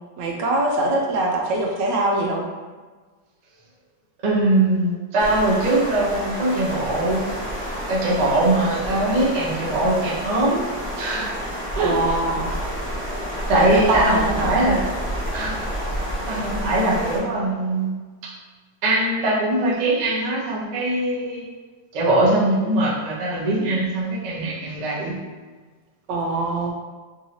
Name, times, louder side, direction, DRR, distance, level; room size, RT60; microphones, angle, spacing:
voice 1, 0.2-2.5 11.8-12.5 13.7-14.7 26.1-26.7, right 2 dB, 80° right, 1 dB, 1.3 m, -23 dB
voice 2, 4.2-7.3 7.9-10.6 11.0-11.3 11.7-12.1 13.5-14.8 15.3-15.6 16.3-17.9 18.8-21.4 21.9-25.2, right 1 dB, 45° right, -6 dB, 0.5 m, -21 dB
sound 1, 5.2-17.2, equal, 5° left, 0.9 m, -29 dB
3.7 x 2.8 x 2.8 m, 1.4 s
omnidirectional pair, 1.9 m